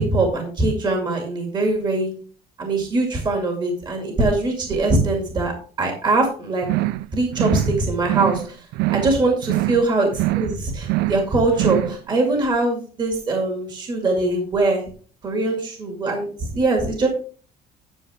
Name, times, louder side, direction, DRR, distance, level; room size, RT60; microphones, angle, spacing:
voice 1, 0.0-2.1 2.6-6.7 7.1-10.1 10.4-14.9 15.2-17.1, right 2 dB, 25° right, 2 dB, 2.2 m, -22 dB
sound 1, 6.6-7.1 7.3-7.8 8.0-8.5 8.7-9.2 9.4-9.9 10.1-10.6 10.8-11.3 11.5-12.0, right 18 dB, 75° right, 0.4 m, -23 dB
11.0 x 6.9 x 3.5 m, 0.41 s
cardioid pair, 180°, 17 cm